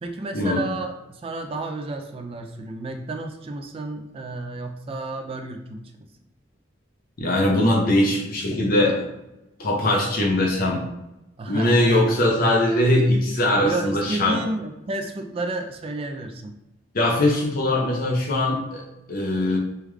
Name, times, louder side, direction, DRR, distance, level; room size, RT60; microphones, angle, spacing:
voice 1, 0.0-5.8 11.4-12.1 13.6-16.5, right 2 dB, 30° right, 4 dB, 0.3 m, -31 dB
voice 2, 7.2-9.0 9.6-10.8 11.5-14.4 16.9-19.6, left 1 dB, 55° left, -1 dB, 0.8 m, -21 dB
3.4 x 2.3 x 3.1 m, 0.93 s
head